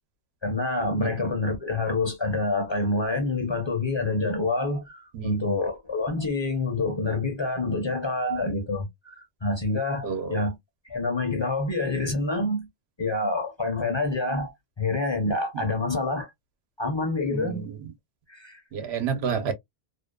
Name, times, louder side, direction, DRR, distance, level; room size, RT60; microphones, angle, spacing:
voice 1, 0.4-10.5 10.8-12.7 13.0-16.3 16.8-17.7 18.3-18.6, left 2 dB, 30° left, 0.7 m, -27 dB
voice 2, 5.1-5.6 10.0-10.5 17.3-17.7 18.7-19.5, right 6 dB, 80° right, 1.0 m, -30 dB
2.6 x 2.2 x 2.2 m
omnidirectional pair, 1.1 m